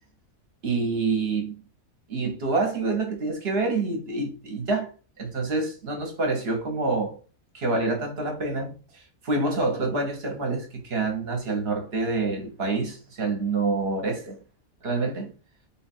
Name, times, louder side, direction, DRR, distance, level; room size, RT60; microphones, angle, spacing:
voice 1, 0.6-1.6 2.1-4.9 5.2-7.1 7.5-14.4 14.8-15.3, right 3 dB, 50° right, 1.2 m, -27 dB
3.6 x 2.4 x 4.2 m
omnidirectional pair, 1.5 m